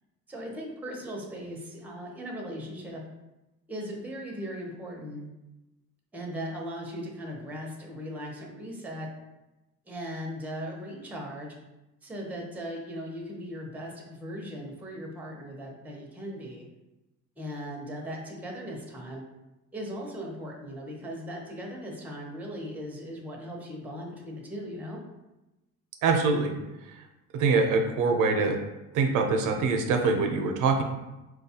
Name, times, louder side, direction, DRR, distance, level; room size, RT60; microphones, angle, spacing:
voice 1, 0.3-3.0 3.7-5.2 6.1-9.1 9.9-11.5 12.0-16.7 17.4-19.2 19.7-25.0, equal, 5° right, -1 dB, 0.6 m, -38 dB
voice 2, 26.0-26.5 27.3-28.6 28.9-30.8, right 4 dB, 85° right, 4 dB, 0.6 m, -24 dB
4.6 x 2.3 x 2.7 m, 1.0 s
cardioid pair, 135°, 30 cm